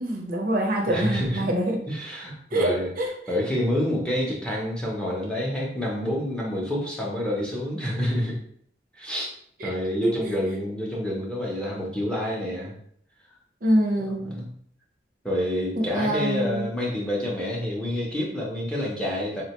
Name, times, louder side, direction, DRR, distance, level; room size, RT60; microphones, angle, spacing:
voice 1, 0.0-1.8 2.5-3.1 9.6-9.7 10.0-10.3 13.6-14.4 15.8-16.7, right 1 dB, 55° right, 1 dB, 0.6 m, -25 dB
voice 2, 0.8-1.5 1.9-2.9 3.3-8.4 9.0-9.3 9.6-12.7 14.2-14.5 15.2-19.4, left 1 dB, 5° left, -3 dB, 0.6 m, -28 dB
3.4 x 2.1 x 2.8 m, 0.65 s
head